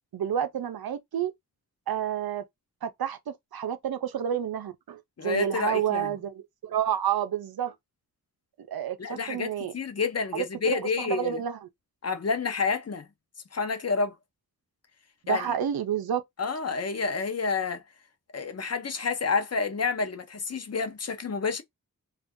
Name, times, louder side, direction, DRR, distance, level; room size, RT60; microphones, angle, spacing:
voice 1, 0.1-1.3 1.9-2.4 2.8-6.3 6.6-7.7 8.7-9.7 10.3-11.6 15.2-16.2, right 9 dB, 90° right, 0.6 m, -29 dB
voice 2, 5.2-6.1 9.0-11.4 12.0-13.1 13.5-14.1 15.3-15.5 16.4-17.8 18.3-21.6, left 4 dB, 45° left, 0.6 m, -29 dB
2.6 x 2.4 x 3.5 m
wide cardioid pair, 95°, 35 cm